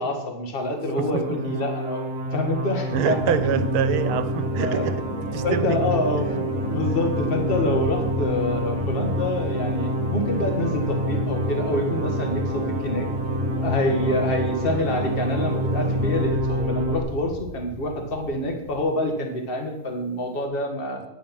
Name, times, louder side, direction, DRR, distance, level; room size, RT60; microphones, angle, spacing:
voice 1, 0.0-2.1 2.3-3.6 4.6-4.9 5.4-13.1 13.6-21.0, left 1 dB, 30° left, 4 dB, 1.7 m, -26 dB
sound 1, 0.7-17.0, equal, 40° right, 2.0 m, -29 dB
voice 2, 1.0-1.5 2.9-5.0 5.3-5.8 21.0-21.1, right 8 dB, 90° right, 11 dB, 1.7 m, -26 dB
sound 2, 2.9-16.6, equal, 20° right, 1.6 m, -30 dB
sound 3, 15.8-18.8, equal, 65° left, 3.3 m, -42 dB
10.5 x 9.0 x 5.9 m, 0.96 s
omnidirectional pair, 2.3 m